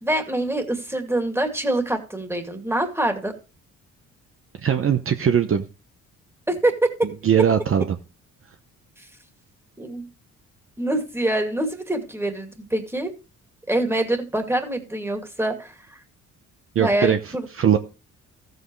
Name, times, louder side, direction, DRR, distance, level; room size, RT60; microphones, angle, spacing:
voice 1, 0.0-3.3 6.5-7.1 9.0-9.1 9.8-10.1 10.8-13.1 13.7-16.0 16.8-17.5, right 1 dB, 10° right, 5 dB, 2.3 m, -25 dB
voice 2, 4.6-5.7 7.2-8.0 16.7-17.2 17.5-17.8, right 8 dB, 45° right, 7 dB, 0.9 m, -20 dB
14.0 x 7.9 x 3.2 m, 0.32 s
cardioid pair, 90°, 30 cm